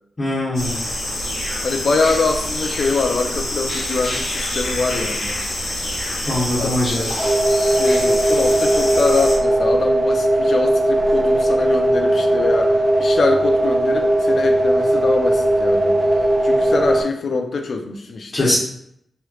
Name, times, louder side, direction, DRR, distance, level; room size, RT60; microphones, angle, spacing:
voice 1, 0.2-0.8 6.3-7.0 18.3-18.6, left 1 dB, 30° left, -8 dB, 1.0 m, -21 dB
sound 1, 0.5-9.4, left 1 dB, 90° left, 1.0 m, -26 dB
voice 2, 1.6-5.4 6.6-7.2 7.5-12.7 13.0-15.9 16.4-18.5, left 4 dB, 65° left, 5 dB, 0.4 m, -24 dB
sound 2, 7.2-17.0, right 1 dB, 5° left, 0.4 m, -18 dB
3.1 x 3.0 x 2.3 m, 0.73 s
cardioid pair, 85°, 0 cm